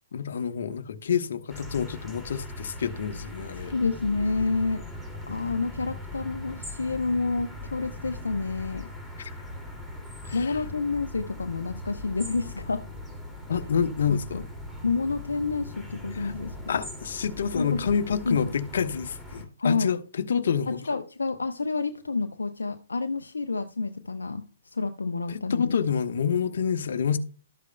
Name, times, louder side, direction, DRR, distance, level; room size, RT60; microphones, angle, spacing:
voice 1, 0.1-3.7 9.2-9.3 10.2-10.6 13.5-14.4 16.1-16.3 16.7-20.8 25.3-27.2, left 7 dB, 60° left, 1.0 m, -28 dB
sound 1, 1.5-19.5, left 1 dB, 5° right, 2.4 m, -40 dB
voice 2, 3.7-4.8 5.3-8.9 10.3-12.8 14.1-14.4 14.8-16.8 17.5-17.9 18.3-18.5 19.6-19.9 20.7-25.8, left 4 dB, 75° left, 0.7 m, -29 dB
13.0 x 8.1 x 2.2 m
figure-of-eight pair, 120°, 0 cm